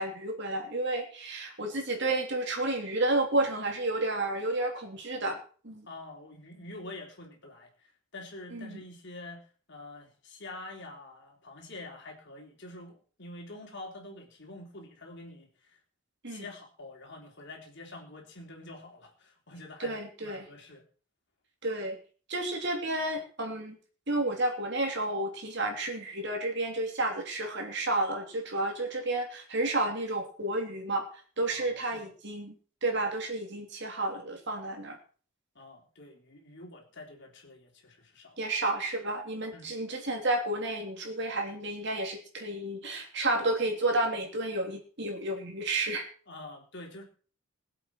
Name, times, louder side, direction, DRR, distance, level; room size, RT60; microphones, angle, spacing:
voice 1, 0.0-5.4 5.6-5.9 8.5-8.8 16.2-16.4 19.8-20.5 21.6-22.0 22.3-23.8 24.1-31.0 31.4-32.5 32.8-35.0 38.4-46.0, right 2 dB, 55° right, 3 dB, 3.1 m, -31 dB
voice 2, 5.9-15.8 16.3-20.8 31.5-32.1 35.6-38.4 39.5-39.7 46.3-47.0, left 2 dB, 55° left, 1 dB, 3.4 m, -46 dB
21.5 x 7.9 x 4.6 m, 0.41 s
head